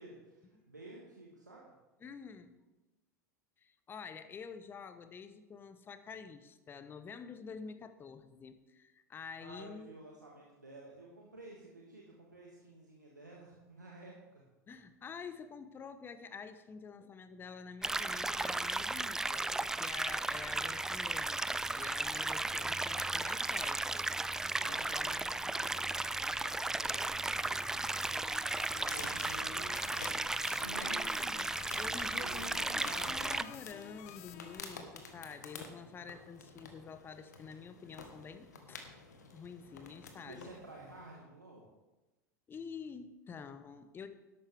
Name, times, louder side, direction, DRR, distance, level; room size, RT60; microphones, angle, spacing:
voice 1, 0.0-1.6 9.4-14.4 24.6-31.0 32.1-33.4 40.2-41.6, right 2 dB, 85° right, -3 dB, 1.6 m, -52 dB
voice 2, 2.0-2.5 3.6-9.9 14.7-24.1 24.7-25.3 30.8-38.8 39.3-40.5 42.5-44.1, left 5 dB, 20° left, 11 dB, 0.9 m, -48 dB
sound 1, 17.8-33.4, right 2 dB, 5° right, 0.3 m, -35 dB
sound 2, 27.8-34.6, left 13 dB, 55° left, 0.7 m, -52 dB
sound 3, 28.5-41.2, left 4 dB, 70° left, 1.5 m, -51 dB
12.5 x 11.5 x 3.5 m, 1.1 s
figure-of-eight pair, 80°, 9 cm